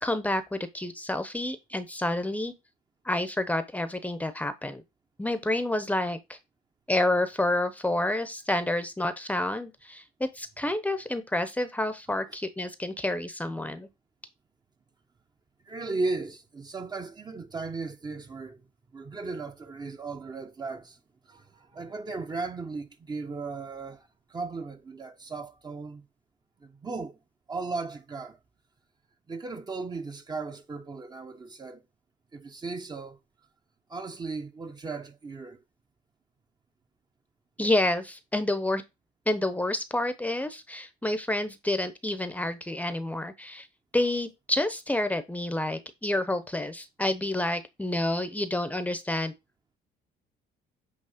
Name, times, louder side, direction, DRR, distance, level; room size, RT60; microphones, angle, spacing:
voice 1, 0.0-2.5 3.0-4.8 5.2-6.4 6.9-13.9 37.6-38.8 39.3-43.7 43.9-49.3, left 1 dB, 10° left, 0.8 m, -29 dB
voice 2, 15.6-18.6 18.9-21.0 21.3-26.1 26.6-27.2 27.5-28.4 29.3-31.8 32.3-33.2 33.9-35.6, right 3 dB, 25° right, 0.9 m, -36 dB
8.3 x 3.2 x 5.0 m
cardioid pair, 110°, 17 cm